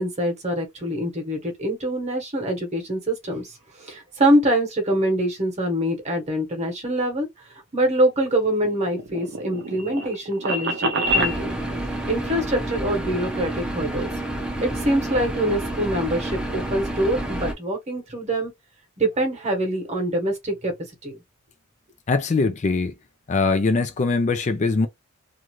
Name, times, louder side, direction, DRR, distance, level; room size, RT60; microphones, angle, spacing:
voice 1, 0.0-7.3 7.7-11.5 12.1-14.1 14.6-18.5 19.0-20.7 21.0-21.2, right 1 dB, 30° right, 1.0 m, -24 dB
sound 1, 8.3-11.4, right 1 dB, 50° right, 0.5 m, -26 dB
sound 2, 11.1-17.5, right 1 dB, 5° right, 0.6 m, -29 dB
voice 2, 22.1-22.9 23.3-24.9, left 3 dB, 35° left, 0.3 m, -22 dB
2.5 x 2.4 x 2.9 m
head